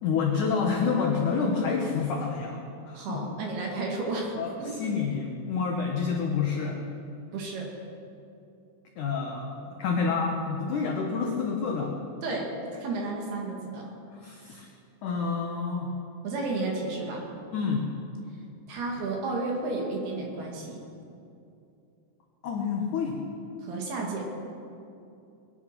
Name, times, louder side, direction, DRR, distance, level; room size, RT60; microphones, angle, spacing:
voice 1, 0.0-2.6 2.9-3.2 4.4-6.8 9.0-12.0 14.1-14.7 15.0-15.9 17.5-17.9 22.4-23.2, left 5 dB, 85° left, 1 dB, 1.8 m, -28 dB
voice 2, 2.9-4.8 7.3-7.7 12.2-13.9 16.2-17.2 18.7-20.8 23.6-24.2, right 3 dB, 60° right, -1 dB, 3.9 m, -32 dB
21.0 x 10.5 x 6.1 m, 2.6 s
omnidirectional pair, 5.3 m